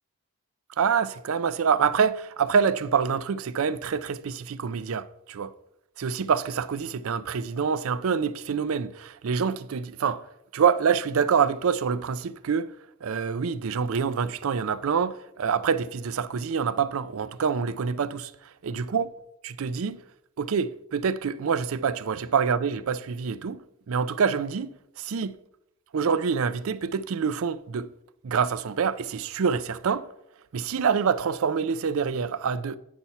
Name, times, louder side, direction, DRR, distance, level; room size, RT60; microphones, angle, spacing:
voice 1, 0.8-5.5 6.0-10.2 10.5-12.7 13.0-18.3 18.6-19.1 19.4-20.0 20.4-23.6 23.9-24.7 25.0-25.3 25.9-27.9 28.2-30.1 30.5-32.8, right 6 dB, 65° right, 0.4 m, -26 dB
9.3 x 4.2 x 5.7 m
head